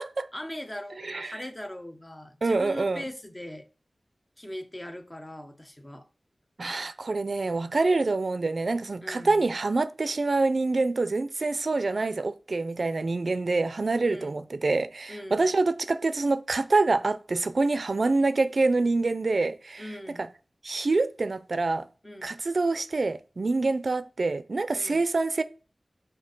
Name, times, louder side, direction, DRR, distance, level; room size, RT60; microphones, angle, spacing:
voice 1, 0.3-3.7 4.4-6.0 9.0-9.5 14.0-14.4 15.1-15.5 19.8-20.3 22.0-22.4 24.7-25.0, left 1 dB, 20° left, 1.0 m, -40 dB
voice 2, 1.0-1.4 2.4-3.0 6.6-19.8 20.2-20.3 20.6-21.9 22.2-25.4, right 3 dB, 65° right, 0.5 m, -26 dB
7.4 x 2.8 x 5.3 m
wide cardioid pair, 75°, 0 cm